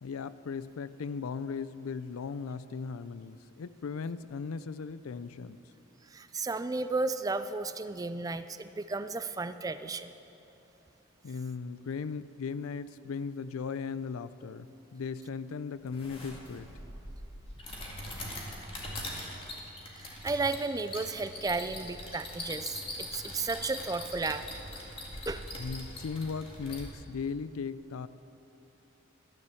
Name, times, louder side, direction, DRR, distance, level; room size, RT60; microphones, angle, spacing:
voice 1, 0.0-5.6 11.2-16.7 25.6-28.1, left 5 dB, 90° left, 15 dB, 0.4 m, -37 dB
voice 2, 6.1-10.1 20.0-24.4 25.3-25.4, right 3 dB, 15° right, 12 dB, 0.3 m, -33 dB
sound 1, 15.9-26.9, left 1 dB, 25° left, 1.9 m, -42 dB
13.5 x 9.8 x 7.0 m, 3.0 s
head